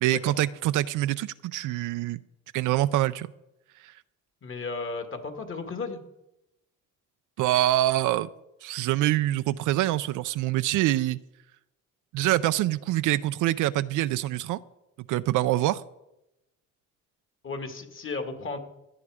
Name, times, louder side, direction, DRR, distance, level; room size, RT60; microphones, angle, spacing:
voice 1, 0.0-2.2 2.5-3.3 3.8-4.0 7.4-8.3 8.6-11.2 12.1-14.6 15.1-15.8, right 15 dB, 85° right, 12 dB, 0.5 m, -25 dB
voice 2, 4.4-6.0 17.4-18.6, left 3 dB, 45° left, 6 dB, 2.0 m, -34 dB
16.0 x 9.9 x 4.9 m, 0.90 s
cardioid pair, 90°, 30 cm